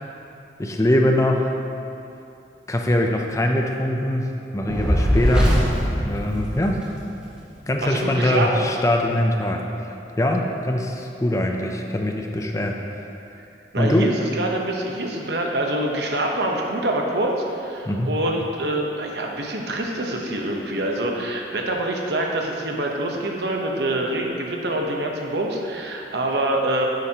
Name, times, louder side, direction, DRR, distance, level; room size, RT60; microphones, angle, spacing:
voice 1, 0.6-1.5 2.7-5.6 6.0-6.8 7.7-12.8 13.8-14.1 17.9-18.1, left 1 dB, 20° left, 2 dB, 0.5 m, -22 dB
Fire, 4.7-7.1, equal, 5° right, 1.5 m, -21 dB
voice 2, 7.8-8.7 13.7-26.8, right 1 dB, 65° right, 0 dB, 1.0 m, -25 dB
9.9 x 8.0 x 2.9 m, 2.7 s
head